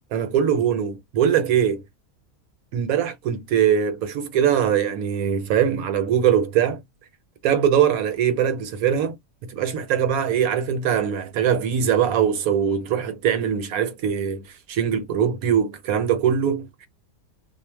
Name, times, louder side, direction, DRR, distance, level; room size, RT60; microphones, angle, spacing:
voice 1, 0.1-1.8 2.7-6.8 7.4-9.2 9.4-16.9, right 8 dB, 75° right, 1.1 m, -22 dB
2.5 x 2.1 x 3.2 m
omnidirectional pair, 1.6 m